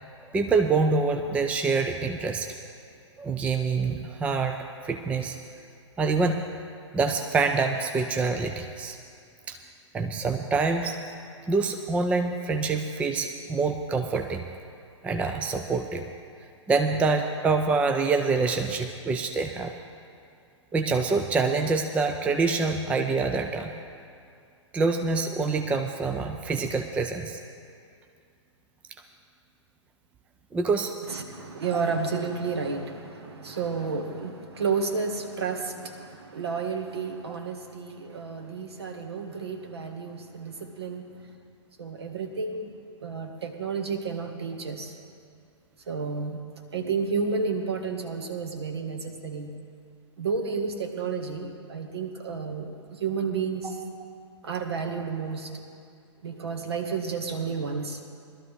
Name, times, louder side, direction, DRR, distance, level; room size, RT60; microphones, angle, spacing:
voice 1, 0.3-2.5 3.2-4.6 4.8-5.4 6.0-6.4 6.9-9.0 9.5-9.6 9.9-11.0 11.5-14.4 15.0-16.1 16.7-19.7 20.7-23.7 24.7-27.4 30.5-30.9 53.6-53.7, right 4 dB, 10° right, 5 dB, 0.4 m, -26 dB
voice 2, 31.1-41.3 41.8-42.7 43.0-44.9 45.9-46.4 46.7-49.5 50.2-53.8 54.4-55.6 56.2-58.0, right 5 dB, 55° right, 5 dB, 1.5 m, -31 dB
21.0 x 13.0 x 3.2 m, 2.4 s
figure-of-eight pair, 110°, 16 cm